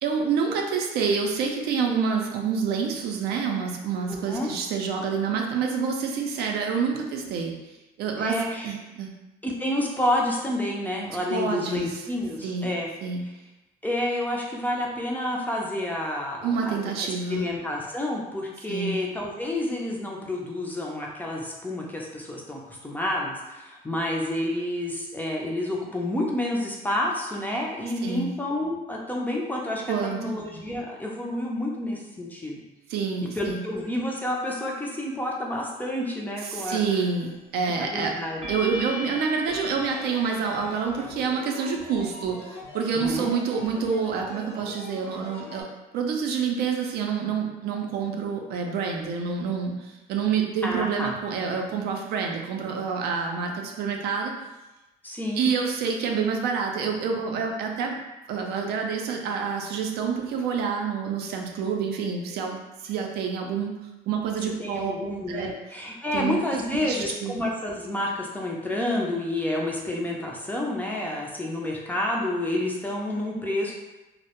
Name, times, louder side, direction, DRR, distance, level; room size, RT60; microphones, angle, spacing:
voice 1, 0.0-7.5 8.0-8.4 8.6-9.1 11.3-11.9 12.4-12.7 13.0-13.2 16.4-17.4 18.7-19.0 28.0-28.3 29.9-30.4 32.9-33.6 36.5-38.1 38.5-45.7 45.9-54.3 55.4-58.0 58.3-63.8 64.1-64.9 65.3-65.5 66.1-66.4 66.8-67.4, right 6 dB, 70° right, 2 dB, 0.4 m, -27 dB
voice 2, 4.1-4.5 8.2-8.7 9.4-12.9 13.8-32.6 33.3-37.0 37.6-38.4 42.9-43.3 50.6-51.1 55.0-55.4 64.6-73.7, left 1 dB, 10° left, -2 dB, 0.4 m, -29 dB
sound 1, 36.7-37.2 38.4-41.2, left 2 dB, 35° right, 0.6 m, -38 dB
sound 2, 39.7-45.6, left 2 dB, 70° left, 0.7 m, -43 dB
2.1 x 2.0 x 2.8 m, 1.0 s
cardioid pair, 110°, 17 cm